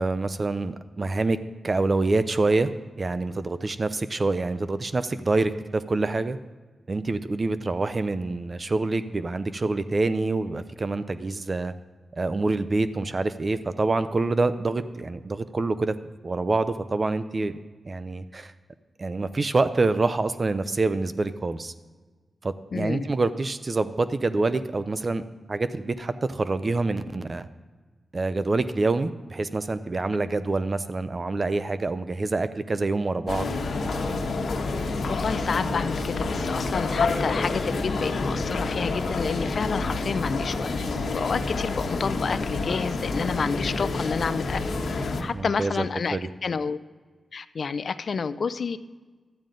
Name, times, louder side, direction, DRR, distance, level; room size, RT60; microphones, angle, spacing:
voice 1, 0.0-1.4 1.6-2.7 3.0-6.4 6.9-11.7 12.1-15.9 16.2-17.6 17.8-18.5 19.0-21.7 22.4-25.2 25.5-27.5 28.1-33.5 45.3-46.3, right 3 dB, 40° right, 12 dB, 0.6 m, -26 dB
voice 2, 22.7-23.1 35.1-40.7 41.1-44.6 44.9-46.8 47.3-48.8, left 5 dB, 65° left, 14 dB, 0.4 m, -29 dB
sound 1, 33.3-45.2, left 3 dB, 80° left, 1.3 m, -28 dB
12.5 x 8.9 x 3.9 m, 1.4 s
wide cardioid pair, 90°, 0 cm